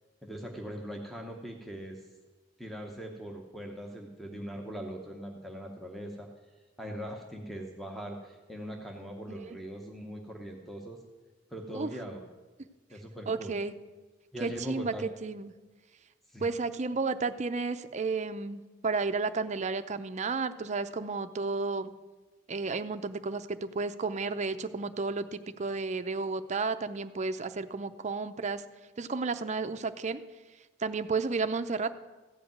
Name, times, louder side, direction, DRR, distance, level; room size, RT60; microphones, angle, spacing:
voice 1, 0.2-2.0 2.6-6.3 6.8-11.0 11.5-12.3 12.9-13.6 14.3-15.1 16.3-16.5, equal, ahead, 1 dB, 0.9 m, -41 dB
voice 2, 9.3-9.6 11.7-11.9 13.3-13.7 14.4-15.5 16.4-21.9 22.5-28.6 29.0-30.2 30.8-31.9, right 4 dB, 40° right, 10 dB, 0.6 m, -32 dB
15.0 x 5.1 x 9.2 m, 1.3 s
head